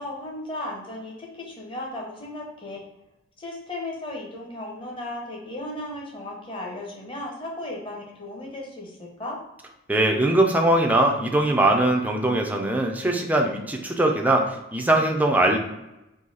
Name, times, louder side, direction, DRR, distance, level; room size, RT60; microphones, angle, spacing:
voice 1, 0.0-2.8 3.4-9.4, left 1 dB, 25° left, -2 dB, 1.0 m, -35 dB
voice 2, 9.9-15.6, right 1 dB, 10° right, 1 dB, 0.4 m, -21 dB
3.9 x 2.8 x 4.1 m, 0.94 s
head